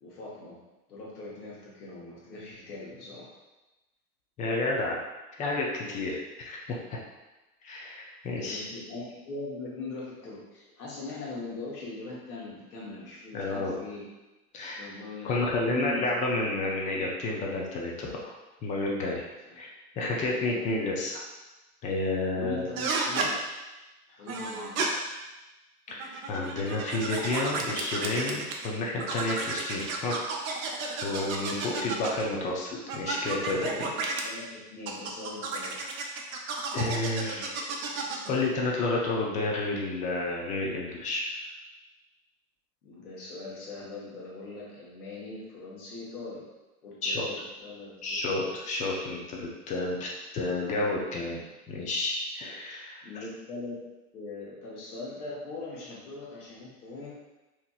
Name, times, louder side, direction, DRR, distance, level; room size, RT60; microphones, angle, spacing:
voice 1, 0.0-0.6 0.9-3.3 8.3-14.0 14.8-16.4 19.4-19.6 20.4-20.6 22.3-23.3 24.1-25.1 31.6-31.9 33.7-35.8 42.8-46.4 46.8-48.4 53.0-53.8 54.1-57.2, left 2 dB, 75° left, -6 dB, 1.2 m, -41 dB
voice 2, 4.4-5.0 5.4-6.6 7.6-8.7 13.3-13.7 14.5-14.9 15.2-18.3 18.6-19.3 19.6-19.7 20.0-21.2 21.8-22.7 25.9-30.1 31.0-33.9 36.7-37.6 38.3-41.3 47.0-47.3 48.0-51.4 51.7-53.1, left 2 dB, 20° left, -2 dB, 0.3 m, -30 dB
sound 1, 22.8-23.3 24.3-24.9 25.9-28.7 29.0-32.3 32.9-34.2 34.9-38.3, right 4 dB, 65° right, 0.6 m, -32 dB
2.9 x 2.5 x 2.3 m, 1.1 s
hypercardioid pair, 90°, 45 cm